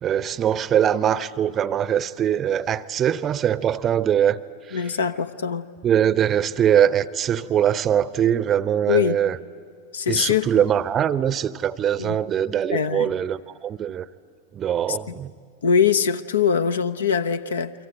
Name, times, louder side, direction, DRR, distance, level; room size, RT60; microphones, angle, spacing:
voice 1, 0.0-4.4 5.8-9.4 10.1-14.1 14.6-15.3, right 9 dB, 25° right, 0.7 m, -22 dB
voice 2, 4.7-5.6 8.9-9.2 9.9-10.6 12.0-12.2 12.7-13.1 14.9-15.0 15.6-17.7, left 7 dB, 65° left, 0.9 m, -22 dB
28.0 x 24.5 x 8.7 m
figure-of-eight pair, 90°, 0 cm